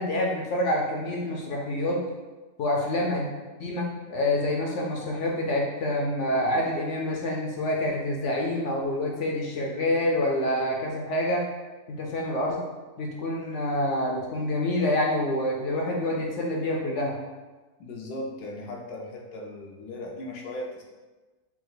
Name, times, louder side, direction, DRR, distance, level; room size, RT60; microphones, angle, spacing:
voice 1, 0.0-2.0 2.6-3.3 3.6-11.4 11.9-12.6 13.0-17.2, left 1 dB, 65° left, -1 dB, 0.8 m, -27 dB
voice 2, 17.8-20.8, left 1 dB, 85° left, -1 dB, 1.2 m, -37 dB
4.3 x 2.3 x 3.8 m, 1.2 s
omnidirectional pair, 1.6 m